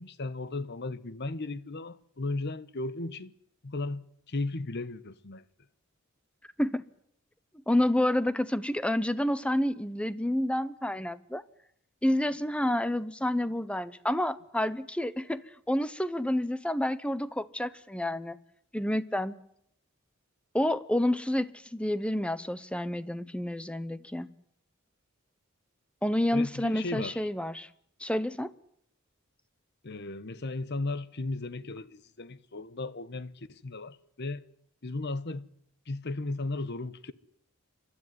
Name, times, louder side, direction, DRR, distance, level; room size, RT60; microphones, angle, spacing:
voice 1, 0.0-3.3 3.6-5.4 26.3-27.3 29.8-34.4 34.8-35.5 35.9-37.1, left 2 dB, 55° left, 1.1 m, -35 dB
voice 2, 7.7-11.4 12.0-18.4 18.7-19.3 20.5-24.3 26.0-27.7 28.0-28.5, left 1 dB, 5° left, 0.9 m, -29 dB
29.0 x 13.0 x 9.6 m
head